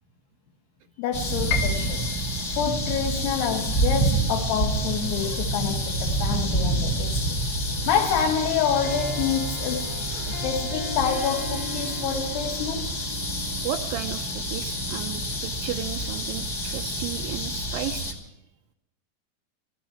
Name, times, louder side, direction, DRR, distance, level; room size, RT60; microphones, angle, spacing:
voice 1, 1.0-2.1 2.5-7.4 7.9-10.0 10.3-13.0, left 8 dB, 75° left, 3.1 m, -27 dB
sound 1, 1.1-18.1, right 1 dB, 30° left, 1.9 m, -28 dB
Piano, 1.5-7.4 7.8-8.9 9.3-9.4 10.1-10.5, left 7 dB, 60° left, 2.8 m, -38 dB
Harp, 7.7-16.0, left 3 dB, 15° left, 1.3 m, -40 dB
voice 2, 10.1-10.5 13.6-18.2, right 11 dB, 85° right, 2.0 m, -34 dB
22.5 x 14.5 x 4.4 m
omnidirectional pair, 4.9 m